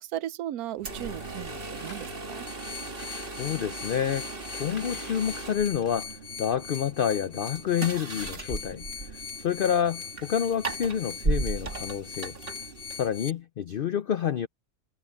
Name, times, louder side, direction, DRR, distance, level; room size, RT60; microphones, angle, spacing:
voice 1, 0.0-2.5, right 12 dB, 75° right, 1.1 m, -36 dB
sound 1, 0.8-13.3, right 3 dB, 40° right, 2.0 m, -37 dB
sound 2, 1.7-2.2 2.9-3.4 4.2-6.8 7.9-8.8, left 2 dB, 35° left, 3.4 m, -51 dB
sound 3, 2.5-13.3, left 6 dB, 60° left, 2.0 m, -41 dB
voice 2, 3.2-12.3 12.9-14.5, left 8 dB, 85° left, 0.4 m, -29 dB
omnidirectional pair, 1.6 m